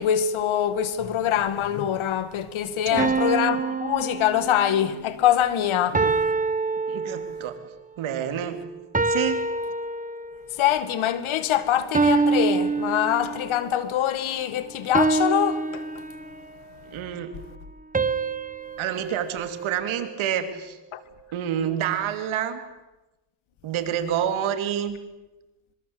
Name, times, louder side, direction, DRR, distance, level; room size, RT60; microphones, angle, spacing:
voice 1, 0.0-6.0 10.5-15.9 20.9-21.0, left 10 dB, 85° left, 2.2 m, -24 dB
sound 1, 3.0-4.9 5.9-7.6 8.9-10.5 11.9-13.6 14.9-16.6 17.9-20.3, right 4 dB, 15° right, 1.2 m, -26 dB
voice 2, 6.9-7.6 8.0-8.6 9.1-9.4 16.9-17.3 18.8-20.8 21.3-22.6 23.6-25.0, right 9 dB, 90° right, 3.1 m, -28 dB
26.5 x 23.5 x 8.0 m
cardioid pair, 100°, 47 cm